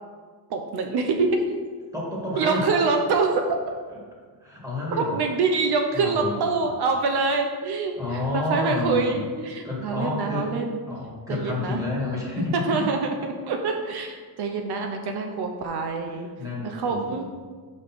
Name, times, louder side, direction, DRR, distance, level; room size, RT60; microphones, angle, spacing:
voice 1, 0.5-1.4 2.4-3.4 4.9-10.8 11.3-11.8 12.5-16.3 16.6-17.2, right 4 dB, 70° right, 4 dB, 0.8 m, -25 dB
voice 2, 1.9-2.7 4.4-5.2 5.9-6.6 8.0-9.2 9.6-10.5 10.9-12.9 16.4-17.2, left 2 dB, 10° right, -5 dB, 2.0 m, -29 dB
5.3 x 5.1 x 6.0 m, 1.6 s
cardioid pair, 150°, 41 cm